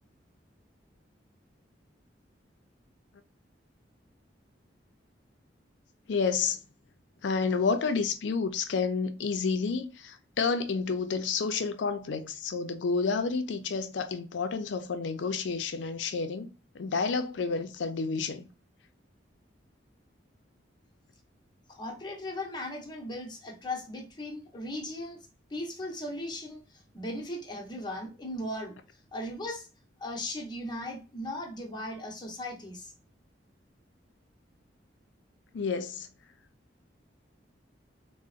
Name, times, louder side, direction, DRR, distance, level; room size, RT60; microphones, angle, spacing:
voice 1, 6.1-6.6 7.2-16.5 16.7-18.5 35.5-36.1, left 4 dB, 80° left, 0.4 m, -30 dB
voice 2, 21.7-25.2 25.5-26.6 26.9-28.8 29.1-29.7 30.0-32.9, left 1 dB, 25° left, 0.8 m, -37 dB
3.8 x 2.0 x 2.4 m
head